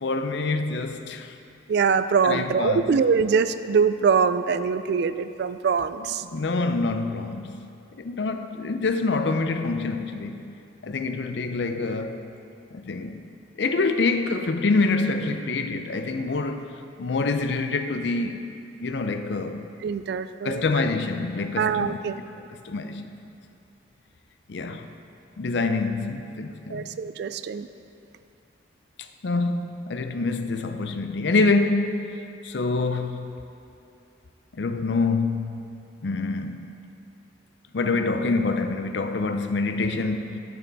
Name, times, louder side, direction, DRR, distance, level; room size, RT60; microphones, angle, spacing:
voice 1, 0.0-1.3 2.2-2.8 6.3-7.7 7.9-10.6 10.8-12.3 12.7-13.2 13.6-16.7 17.0-18.4 18.8-19.7 20.4-22.0 22.3-23.1 24.5-24.9 25.4-26.8 29.0-33.3 34.5-35.7 36.0-36.8 37.7-40.4, left 3 dB, 65° left, 0.5 m, -26 dB
voice 2, 1.7-6.2 19.8-20.6 21.6-22.2 26.7-27.7, right 6 dB, 60° right, 0.3 m, -23 dB
12.0 x 6.7 x 4.0 m
head